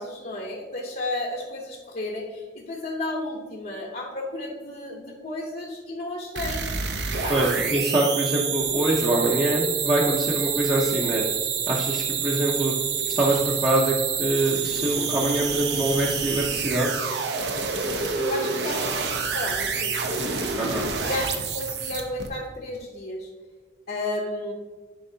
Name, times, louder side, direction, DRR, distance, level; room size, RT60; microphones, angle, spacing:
voice 1, 0.0-6.7 7.2-7.3 18.1-20.0 20.4-20.6 21.0-23.3 23.9-24.5, left 1 dB, 55° left, -3 dB, 0.8 m, -32 dB
sound 1, 6.4-22.3, right 6 dB, 65° right, 0.7 m, -28 dB
voice 2, 7.3-11.2 11.7-12.7 13.2-16.9 20.5-20.9, right 2 dB, 25° right, -4 dB, 0.7 m, -24 dB
10.5 x 4.6 x 2.8 m, 1.4 s
head